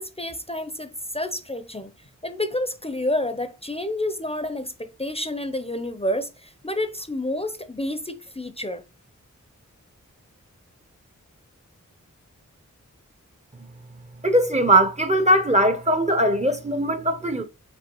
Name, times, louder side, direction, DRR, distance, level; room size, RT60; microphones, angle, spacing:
voice 1, 0.0-1.9 2.2-8.8, left 1 dB, 20° left, 0.6 m, -29 dB
voice 2, 14.2-17.4, right 1 dB, 20° right, 0.6 m, -20 dB
5.3 x 3.3 x 2.9 m
cardioid pair, 40°, 32 cm